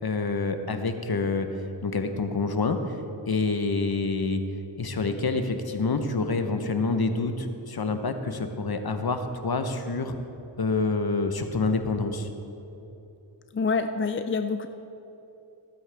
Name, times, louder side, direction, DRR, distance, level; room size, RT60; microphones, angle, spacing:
voice 1, 0.0-1.5 1.8-2.8 3.3-4.4 4.8-10.1 10.6-12.3, left 3 dB, 50° left, 7 dB, 1.0 m, -27 dB
voice 2, 13.5-14.7, left 4 dB, 25° left, 8 dB, 0.4 m, -26 dB
16.0 x 8.8 x 3.5 m, 3.0 s
cardioid pair, 50°, 48 cm